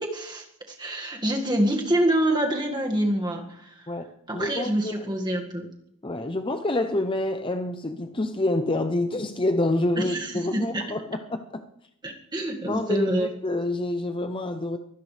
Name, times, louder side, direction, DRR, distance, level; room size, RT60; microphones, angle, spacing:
voice 1, 0.0-3.9 4.3-5.7 10.0-10.8 12.0-13.3, right 1 dB, 20° right, 1 dB, 1.9 m, -26 dB
voice 2, 3.9-5.1 6.0-11.6 12.6-14.8, left 1 dB, 20° left, 7 dB, 0.7 m, -27 dB
23.5 x 17.0 x 3.4 m, 0.75 s
head